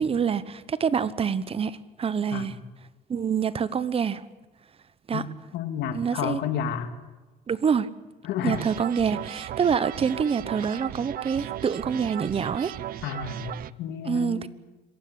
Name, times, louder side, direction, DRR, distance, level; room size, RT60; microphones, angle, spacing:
voice 1, 0.0-2.5 3.1-4.2 5.1-5.2 5.9-6.4 7.5-7.9 8.4-12.8 14.0-14.5, right 6 dB, 35° right, 16 dB, 1.1 m, -26 dB
voice 2, 5.5-6.9 8.2-8.6 13.0-14.5, left 8 dB, 85° left, 8 dB, 2.2 m, -31 dB
sound 1, 8.5-13.7, right 12 dB, 60° right, 0.7 m, -36 dB
26.0 x 16.0 x 8.4 m, 1.2 s
cardioid pair, 110°, 17 cm